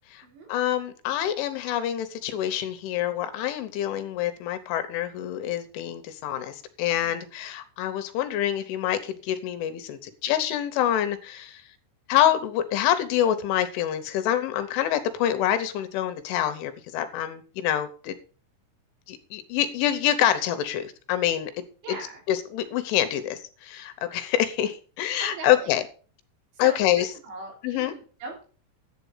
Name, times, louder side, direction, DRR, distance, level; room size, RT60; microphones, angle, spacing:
voice 1, 0.1-11.7 12.1-18.2 19.1-21.5 22.3-25.8 26.6-27.1 27.6-27.9, left 11 dB, 80° left, 10 dB, 3.2 m, -26 dB
voice 2, 21.8-22.2 25.2-25.8 26.5-28.4, right 3 dB, 65° right, 1 dB, 5.1 m, -40 dB
11.0 x 8.3 x 5.5 m, 0.40 s
omnidirectional pair, 5.8 m